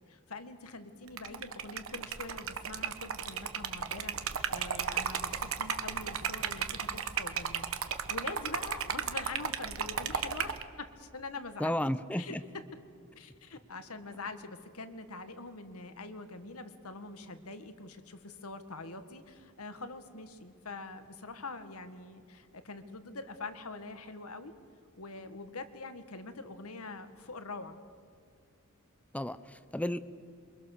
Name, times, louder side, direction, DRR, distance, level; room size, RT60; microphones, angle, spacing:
voice 1, 0.1-11.8 12.2-12.4 13.1-24.5 25.0-27.8, left 3 dB, 80° left, 9 dB, 1.8 m, -44 dB
Liquid, 1.1-10.6, right 7 dB, 65° right, 1.3 m, -35 dB
voice 2, 11.6-12.4 29.1-30.0, left 1 dB, 5° left, 14 dB, 0.6 m, -33 dB
28.0 x 24.0 x 6.7 m, 2.3 s
head